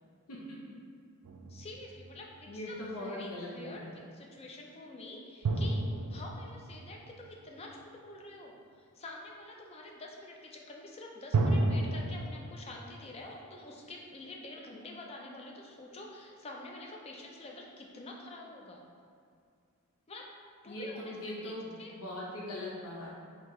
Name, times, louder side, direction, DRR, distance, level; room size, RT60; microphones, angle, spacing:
voice 1, 0.3-0.8 2.5-4.0 20.7-23.2, left 1 dB, 75° left, -5 dB, 0.6 m, -41 dB
sound 1, 1.2-2.6 5.4-8.0 11.3-12.3, right 2 dB, 85° right, 0.4 m, -32 dB
voice 2, 1.5-18.8 20.1-20.3 20.6-21.1 21.4-21.5 21.8-21.9, left 2 dB, 25° left, 0 dB, 0.4 m, -47 dB
4.3 x 2.8 x 3.0 m, 2.3 s
head